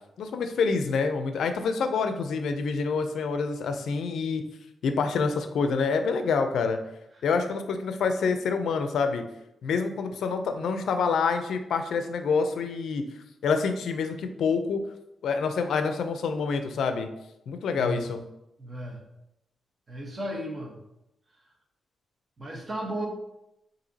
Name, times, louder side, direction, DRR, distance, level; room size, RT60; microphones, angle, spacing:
voice 1, 0.2-4.4 4.8-6.8 7.2-9.2 9.6-13.0 13.4-14.8 15.2-17.1 17.5-18.2, left 5 dB, 80° left, 7 dB, 0.4 m, -27 dB
voice 2, 17.8-18.1 18.6-19.0 19.9-20.8 22.4-23.1, right 1 dB, 25° right, -1 dB, 0.9 m, -34 dB
5.7 x 2.7 x 2.7 m, 0.85 s
wide cardioid pair, 165°, 0 cm